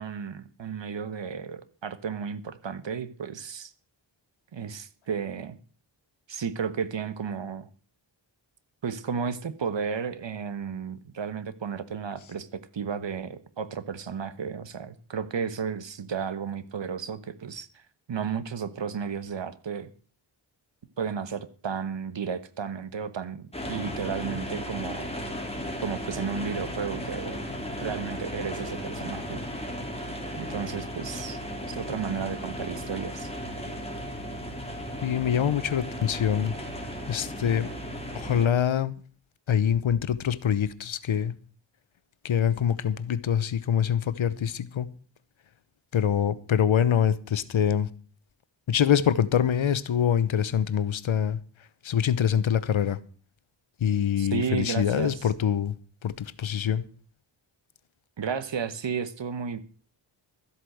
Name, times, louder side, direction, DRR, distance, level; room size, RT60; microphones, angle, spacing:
voice 1, 0.0-3.7 4.5-5.6 6.3-7.7 8.8-17.7 18.1-19.9 21.0-25.1 25.8-27.4 27.8-29.4 30.4-31.4 31.7-33.3 54.2-55.2 58.2-59.6, right 6 dB, 70° right, 1.3 m, -33 dB
sound 1, 23.5-38.5, equal, 15° left, 3.3 m, -35 dB
voice 2, 35.0-36.5 37.1-37.7 38.1-38.9 39.5-41.3 42.2-44.9 45.9-47.9 48.7-51.4 51.8-53.0 53.8-55.7 56.0-56.8, left 9 dB, 85° left, 1.0 m, -25 dB
13.0 x 8.3 x 7.7 m
wide cardioid pair, 80°, 46 cm